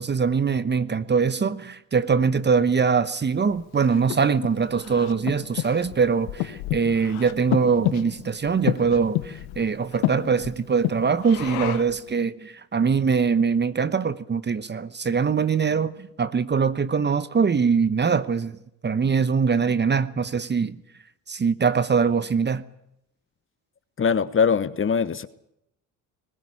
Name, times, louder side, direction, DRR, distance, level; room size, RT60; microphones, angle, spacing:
voice 1, 0.0-18.6 18.8-20.8 21.3-22.6, right 5 dB, 25° right, 1.0 m, -23 dB
Breathing, 3.5-12.0, left 17 dB, 90° left, 1.2 m, -31 dB
voice 2, 24.0-25.3, left 6 dB, 30° left, 1.2 m, -22 dB
21.0 x 15.5 x 10.0 m
supercardioid pair, 80°, 39 cm